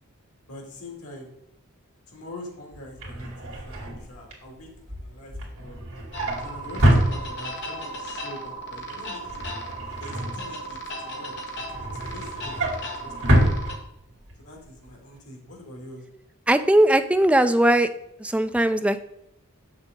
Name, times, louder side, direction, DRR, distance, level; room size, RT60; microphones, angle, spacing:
voice 1, 0.5-1.3 2.1-5.8 6.4-9.4 10.0-13.5 14.4-16.0, left 1 dB, 90° left, 1 dB, 2.4 m, -44 dB
Drawer open or close, 2.7-7.8 8.1-8.5 8.7-10.9 11.4-14.3 14.7-14.9 15.2-15.3, right 1 dB, 65° right, 2.5 m, -26 dB
sound 1, 6.1-13.8, right 1 dB, 55° left, 1.5 m, -36 dB
voice 2, 16.5-17.9 18.2-19.0, right 1 dB, 5° right, 9 dB, 0.3 m, -19 dB
7.1 x 6.6 x 3.7 m, 0.80 s
head